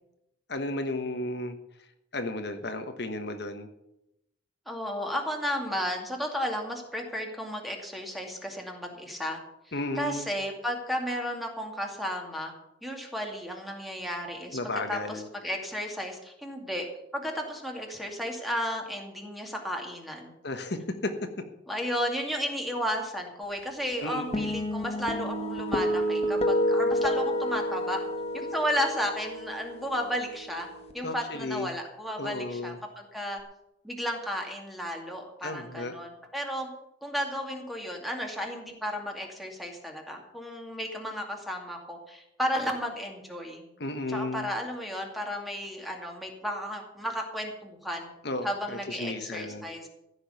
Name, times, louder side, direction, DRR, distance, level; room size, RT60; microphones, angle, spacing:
voice 1, 0.5-1.6 2.1-3.7 9.7-10.3 14.5-15.3 20.4-21.1 24.0-24.5 31.0-31.7 32.2-32.8 35.4-35.9 43.8-44.5 48.2-49.6, left 2 dB, 65° left, 6 dB, 1.3 m, -33 dB
voice 2, 4.7-9.4 10.0-12.5 12.8-14.6 14.9-16.9 17.1-20.3 21.7-28.0 28.3-33.4 33.8-36.7 37.0-43.7 44.1-48.1 48.4-49.9, equal, ahead, 1 dB, 2.4 m, -33 dB
sound 1, 24.3-30.9, equal, 35° left, 1.4 m, -29 dB
15.0 x 6.5 x 9.3 m, 0.86 s
head